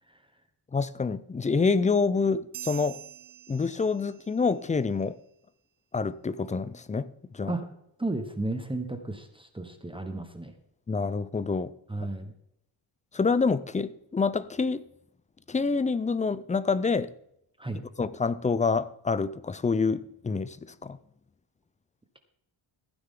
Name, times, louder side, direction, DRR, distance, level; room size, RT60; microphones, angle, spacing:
voice 1, 0.7-3.0 3.5-5.1 5.9-7.5 10.9-11.7 13.1-14.8 15.5-17.1 18.0-21.0, left 4 dB, 15° left, 0.4 m, -27 dB
sound 1, 2.5-4.4, right 12 dB, 65° right, 0.8 m, -44 dB
voice 2, 8.0-10.5 11.9-12.3 17.6-17.8, right 2 dB, 10° right, 1.1 m, -33 dB
15.5 x 9.6 x 3.7 m
cardioid pair, 120°, 49 cm